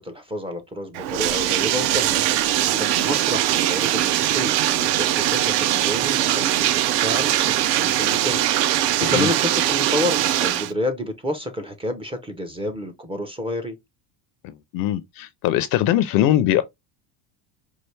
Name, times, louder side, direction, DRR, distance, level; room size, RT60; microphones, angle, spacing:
voice 1, 0.0-8.4 8.7-13.8, left 1 dB, 10° right, 0.4 m, -30 dB
Bathtub (filling or washing), 0.9-10.7, right 13 dB, 60° right, 0.6 m, -21 dB
voice 2, 14.4-16.6, left 12 dB, 45° left, 0.5 m, -21 dB
4.5 x 2.4 x 3.1 m
cardioid pair, 135°, 49 cm